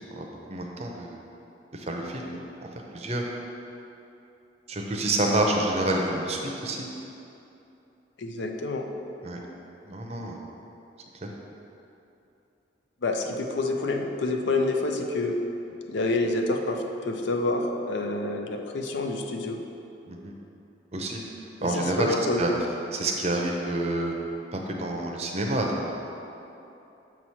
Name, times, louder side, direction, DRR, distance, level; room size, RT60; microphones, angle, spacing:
voice 1, 0.1-1.2 1.7-2.4 2.9-3.2 4.7-6.9 9.2-9.4 9.8-10.4 11.2-11.3 20.1-20.3 20.9-21.2 21.6-22.1 22.4-22.5 22.9-24.1 24.5-25.9, right 2 dB, 35° right, 0 dB, 0.6 m, -28 dB
voice 2, 8.2-8.8 13.0-15.3 15.9-19.6 21.6-22.6, left 2 dB, 75° left, 3 dB, 0.5 m, -28 dB
7.1 x 3.1 x 5.6 m, 2.8 s
head